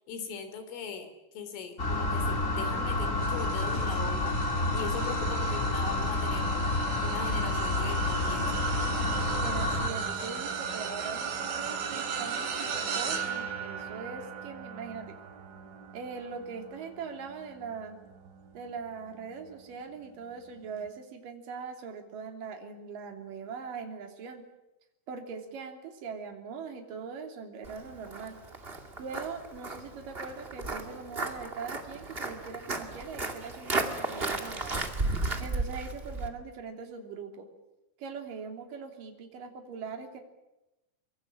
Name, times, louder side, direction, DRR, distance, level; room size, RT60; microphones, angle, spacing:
voice 1, 0.1-1.1 1.4-4.4 4.7-6.5 7.0-8.6, left 6 dB, 90° left, 9 dB, 5.8 m, -40 dB
sound 1, 1.8-9.9, left 2 dB, 20° left, 2.5 m, -29 dB
sound 2, 3.2-18.7 19.2-19.5 20.7-20.8, right 6 dB, 85° right, 5.9 m, -37 dB
voice 2, 9.4-15.2 15.9-18.0 18.5-24.5 25.1-28.3 29.0-34.8 35.4-37.5 38.0-40.2, right 5 dB, 50° right, 4 dB, 4.3 m, -41 dB
Walk footsteps, 27.6-36.3, right 3 dB, 30° right, 1.0 m, -34 dB
24.5 x 24.0 x 8.8 m, 0.96 s
omnidirectional pair, 5.5 m